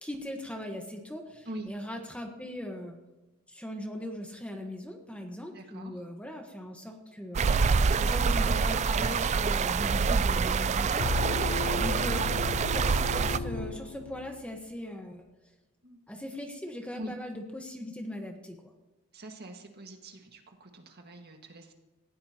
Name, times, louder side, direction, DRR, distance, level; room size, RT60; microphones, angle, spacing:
voice 1, 0.0-3.0 3.5-7.5 8.0-11.4 11.7-12.2 12.7-15.2 16.1-18.7, left 1 dB, 5° left, 3 dB, 1.2 m, -39 dB
voice 2, 5.5-6.1 15.8-16.0 16.9-17.1 19.1-21.7, right 1 dB, 50° right, 3 dB, 1.8 m, -44 dB
sound 1, 7.3-13.4, right 5 dB, 30° right, 0.3 m, -26 dB
sound 2, 11.0-14.5, left 3 dB, 80° left, 0.6 m, -34 dB
19.0 x 15.5 x 3.0 m, 1.1 s
head